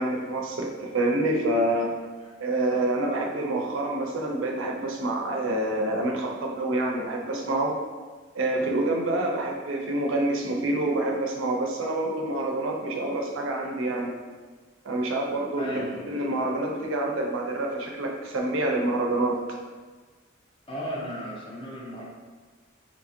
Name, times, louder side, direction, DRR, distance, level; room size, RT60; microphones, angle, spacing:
voice 1, 0.0-1.9 2.4-7.8 8.3-14.1 14.8-19.4, right 1 dB, 70° right, 1 dB, 0.4 m, -27 dB
voice 2, 15.6-16.0 20.7-22.0, equal, 25° left, -4 dB, 0.6 m, -35 dB
3.0 x 2.6 x 2.5 m, 1.4 s
head